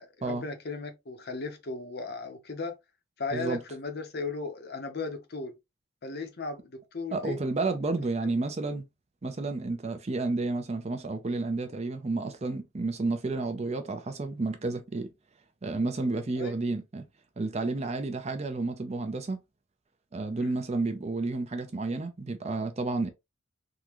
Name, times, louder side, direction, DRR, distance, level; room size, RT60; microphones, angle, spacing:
voice 1, 0.0-2.8 3.2-5.5 6.0-7.4 8.2-8.3 16.4-16.6 20.4-20.6, left 3 dB, 50° left, 0.7 m, -36 dB
voice 2, 7.1-8.8 9.2-15.1 15.6-17.1 17.4-19.4 20.1-23.1, right 3 dB, 30° right, 0.5 m, -31 dB
3.7 x 2.2 x 2.9 m
head